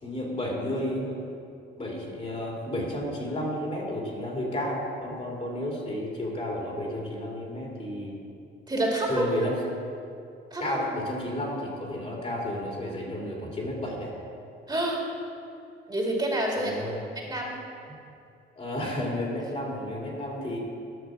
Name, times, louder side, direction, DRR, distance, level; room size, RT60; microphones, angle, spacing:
voice 1, 0.0-1.2 1.8-8.2 9.1-9.6 10.6-14.1 16.6-17.1 17.9-18.0 18.6-20.6, left 1 dB, 30° left, -2 dB, 2.5 m, -32 dB
voice 2, 8.7-9.3 10.5-10.6 14.7-15.0 15.9-17.6, right 1 dB, 20° right, -2 dB, 2.4 m, -28 dB
11.0 x 6.2 x 6.1 m, 2.6 s
cardioid pair, 90°, 20 cm